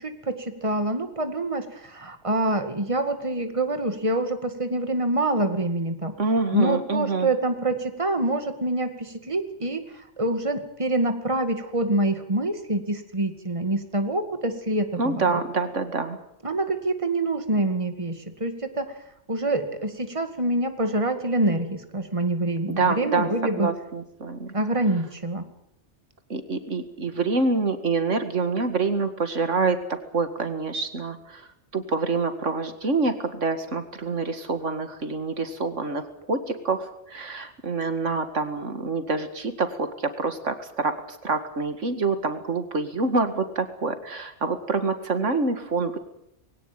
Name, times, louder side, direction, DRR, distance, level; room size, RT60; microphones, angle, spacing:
voice 1, 0.0-6.1 6.5-9.8 10.2-15.2 16.4-18.9 19.3-23.7 24.5-25.5, right 2 dB, 25° right, 7 dB, 2.2 m, -26 dB
voice 2, 6.2-7.3 15.0-16.2 22.8-24.5 26.3-29.8 30.1-46.0, right 3 dB, 90° right, 9 dB, 2.4 m, -26 dB
22.0 x 18.0 x 9.2 m, 0.78 s
omnidirectional pair, 1.2 m